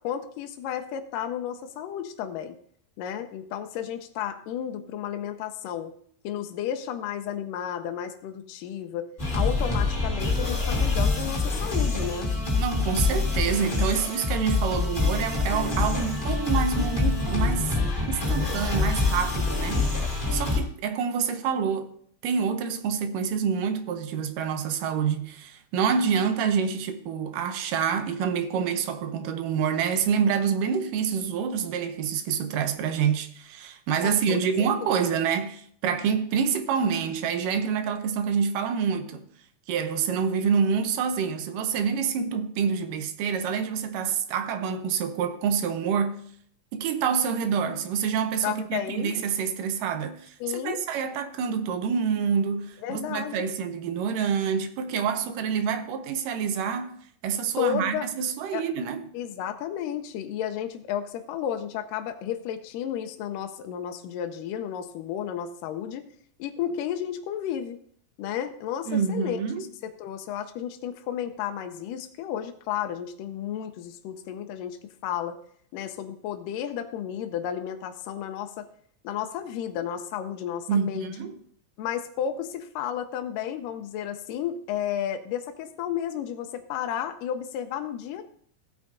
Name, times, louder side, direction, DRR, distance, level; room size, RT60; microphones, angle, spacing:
voice 1, 0.0-2.6 3.0-5.9 6.2-12.3 34.0-35.0 48.4-49.2 50.4-50.8 52.8-53.5 57.6-58.1 58.5-58.7 59.1-66.1 66.4-67.8 68.2-69.4 69.8-75.4 75.7-78.7 79.0-81.1 81.8-88.2, left 9 dB, 80° left, 2.1 m, -32 dB
sound 1, 9.2-20.6, left 3 dB, 15° left, 2.4 m, -25 dB
voice 2, 12.6-17.8 18.1-20.0 20.3-21.9 22.2-39.3 39.7-46.2 46.7-50.4 50.6-59.1 68.9-69.6 80.7-81.4, right 7 dB, 75° right, 2.3 m, -27 dB
15.5 x 8.7 x 2.6 m
omnidirectional pair, 4.0 m